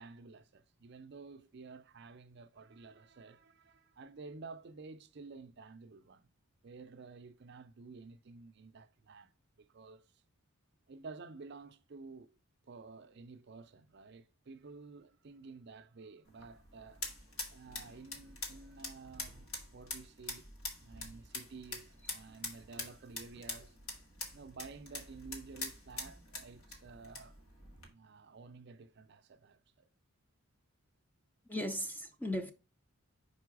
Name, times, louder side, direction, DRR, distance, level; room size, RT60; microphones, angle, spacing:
voice 1, 0.0-6.3 6.6-9.3 9.6-10.1 10.9-12.3 12.7-17.0 17.5-20.5 20.8-23.8 24.3-27.4 27.9-29.9, right 4 dB, 50° right, 0.4 m, -52 dB
sound 1, 16.2-27.9, left 2 dB, 70° left, 1.9 m, -45 dB
voice 2, 31.5-32.5, left 1 dB, 10° left, 0.5 m, -37 dB
5.4 x 4.6 x 4.7 m
head